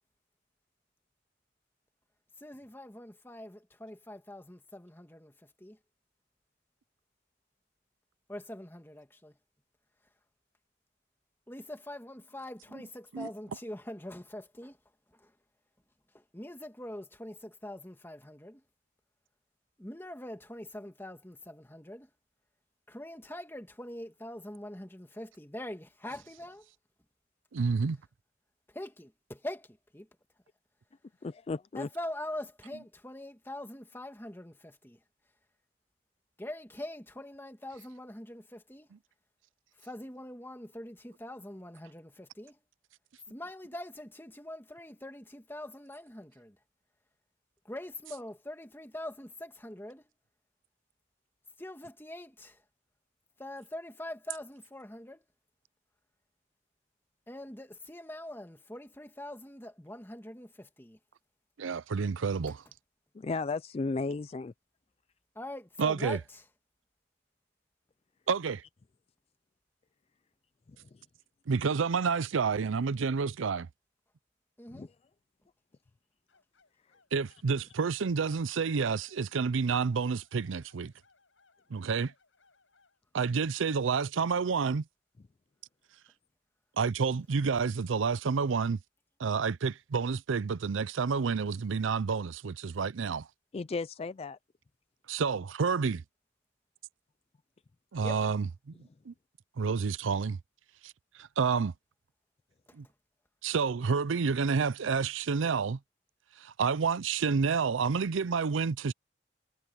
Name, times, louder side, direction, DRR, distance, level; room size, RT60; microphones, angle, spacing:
voice 1, 2.4-5.8 8.3-9.4 11.5-14.8 15.1-15.3 16.1-18.6 19.8-22.1 22.9-26.7 28.7-30.1 31.8-35.0 36.4-38.9 39.8-42.6 43.3-46.6 47.6-50.1 51.6-52.6 53.4-55.2 57.3-61.0 62.5-62.6 65.4-66.4 74.6-74.9 98.0-98.2 102.7-102.8, left 1 dB, 10° left, 2.0 m, -43 dB
voice 2, 27.5-28.0 61.6-62.6 65.8-66.2 68.3-68.6 71.5-73.7 77.1-80.9 81.7-82.1 83.1-84.8 86.8-88.8 89.2-93.3 95.1-96.0 97.9-98.7 99.1-99.2 99.6-100.4 100.8-100.9 101.2-101.7 102.8-102.9 103.4-105.8 106.4-108.9, right 5 dB, 90° right, 0.5 m, -29 dB
voice 3, 31.2-31.9 63.1-64.5 70.9-71.0 74.7-74.9 93.5-94.4, left 3 dB, 30° left, 0.3 m, -34 dB
sound 1, 76.3-83.0, left 4 dB, 80° left, 7.6 m, -68 dB
head